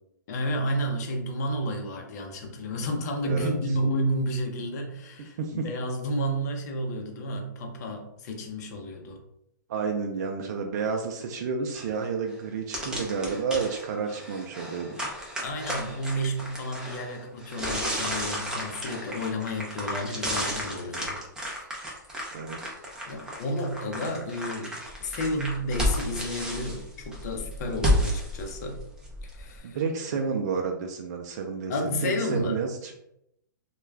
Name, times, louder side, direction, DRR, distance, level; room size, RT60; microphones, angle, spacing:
voice 1, 0.3-9.2 15.4-22.0 23.1-28.8 29.2-29.8 30.1-30.2 31.7-32.6, equal, 55° left, 2 dB, 0.7 m, -31 dB
voice 2, 9.7-15.0 22.3-22.8 29.6-31.7 32.0-32.9, right 5 dB, 55° right, 3 dB, 0.4 m, -30 dB
sound 1, 11.7-11.9 12.3-12.4 12.7-29.6, equal, 5° right, 0.6 m, -32 dB
2.3 x 2.2 x 3.2 m, 0.80 s
hypercardioid pair, 135°, 11 cm